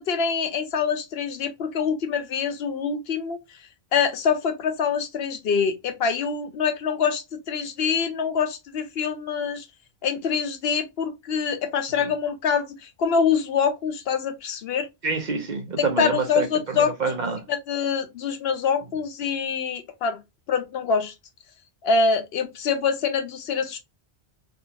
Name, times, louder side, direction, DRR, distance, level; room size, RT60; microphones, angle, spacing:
voice 1, 0.0-3.4 3.9-9.7 10.0-14.9 15.8-16.9 17.5-20.2 20.5-21.1 21.8-23.8, left 6 dB, 75° left, 0.9 m, -25 dB
voice 2, 15.0-17.4, right 4 dB, 50° right, 0.8 m, -27 dB
3.7 x 2.4 x 2.8 m
omnidirectional pair, 1.1 m